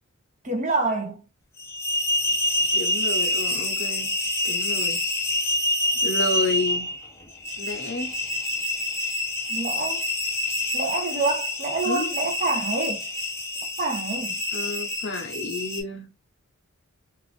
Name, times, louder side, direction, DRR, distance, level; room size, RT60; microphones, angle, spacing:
voice 1, 0.4-1.3 9.5-10.1 10.7-13.1 13.8-14.4, right 3 dB, 35° right, 0.6 m, -27 dB
sound 1, 1.6-15.8, left 1 dB, 10° left, 0.5 m, -27 dB
voice 2, 2.7-4.1 4.4-5.0 6.0-6.9 7.6-8.2 11.8-12.1 14.5-16.1, left 2 dB, 55° left, 0.7 m, -30 dB
2.5 x 2.4 x 3.1 m
head